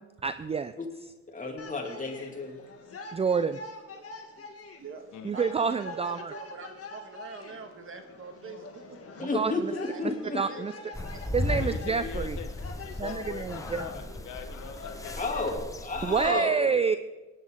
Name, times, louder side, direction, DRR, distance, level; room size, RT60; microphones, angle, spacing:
voice 1, 0.2-0.7 3.1-3.6 5.2-6.3 9.2-9.7 10.3-10.7 11.3-12.4 13.0-13.8 16.0-17.0, right 5 dB, 20° right, 12 dB, 0.4 m, -28 dB
voice 2, 1.3-2.6 9.2-10.6 15.2-16.8, left 3 dB, 25° left, 1 dB, 2.6 m, -32 dB
sound 1, 1.6-15.6, left 3 dB, 50° left, 2.1 m, -45 dB
voice 3, 5.3-9.0 9.9-11.4, right 5 dB, 45° right, 5 dB, 1.8 m, -45 dB
sound 2, 10.9-16.3, left 2 dB, 10° left, 0.9 m, -36 dB
voice 4, 11.5-15.6, left 7 dB, 75° left, 7 dB, 1.2 m, -42 dB
18.5 x 9.7 x 3.7 m, 1.2 s
cardioid pair, 90°, 30 cm